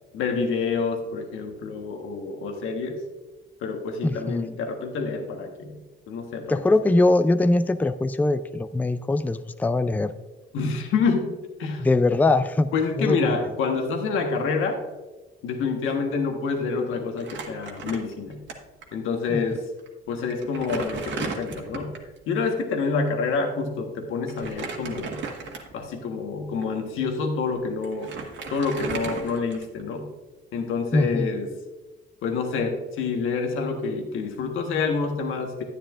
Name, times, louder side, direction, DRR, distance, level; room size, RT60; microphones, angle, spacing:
voice 1, 0.1-3.0 3.6-5.8 6.1-6.6 10.5-11.9 12.7-14.8 15.4-18.4 18.9-19.6 20.1-22.0 22.3-25.2 25.7-28.1 28.5-30.1 30.5-31.5 32.2-35.6, left 4 dB, 90° left, 3 dB, 1.3 m, -27 dB
voice 2, 4.0-4.5 6.5-10.1 11.8-12.7 13.0-13.2 19.3-19.4 30.9-31.4, left 2 dB, 10° left, 11 dB, 0.4 m, -22 dB
Crumpling crinkling, 17.2-18.5 18.8-18.9 19.8-19.9 20.3-22.1 24.3-25.9 26.5-26.6 27.5-27.6 27.8-29.9, right 4 dB, 65° right, 1.6 m, -35 dB
10.0 x 10.0 x 2.5 m, 1.2 s
cardioid pair, 90°, 20 cm